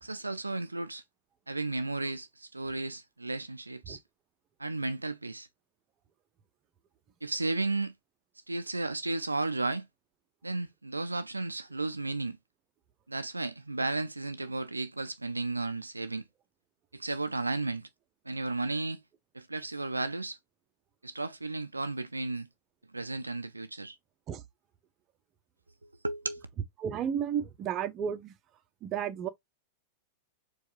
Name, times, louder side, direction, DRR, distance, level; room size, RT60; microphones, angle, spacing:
voice 1, 0.0-1.0 1.5-4.0 4.6-5.5 7.2-7.9 8.5-9.9 10.4-12.4 13.1-16.2 16.9-17.9 18.3-19.0 19.3-20.4 21.0-22.5 22.9-24.0 25.8-26.5, right 2 dB, 85° right, 0.3 m, -34 dB
voice 2, 26.8-28.3 28.8-29.3, right 8 dB, 35° right, 0.5 m, -32 dB
4.6 x 2.3 x 2.7 m
figure-of-eight pair, 95°, 0 cm